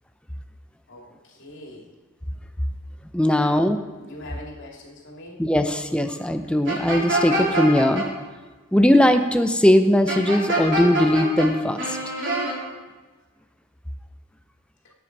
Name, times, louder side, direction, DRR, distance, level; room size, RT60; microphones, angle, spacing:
voice 1, 0.9-1.9 3.3-3.6 4.0-5.4 14.8-14.9, left 1 dB, 55° left, -1 dB, 3.0 m, -42 dB
voice 2, 3.1-3.8 5.4-8.0 8.7-12.0, left 1 dB, 5° left, 7 dB, 0.7 m, -19 dB
sound 1, 6.7-8.0 10.1-11.5 11.8-12.5, right 1 dB, 55° right, 3.6 m, -25 dB
17.0 x 8.8 x 4.7 m, 1.3 s
head